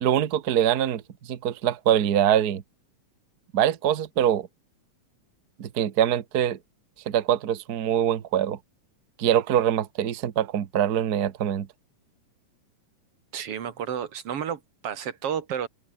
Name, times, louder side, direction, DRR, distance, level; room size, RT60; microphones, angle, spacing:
voice 1, 0.0-1.0 1.3-2.6 3.5-4.5 5.6-6.6 7.1-8.6 9.2-11.7, right 10 dB, 80° right, 0.8 m, -23 dB
voice 2, 13.3-15.7, right 8 dB, 50° right, 2.5 m, -31 dB
open air
omnidirectional pair, 3.7 m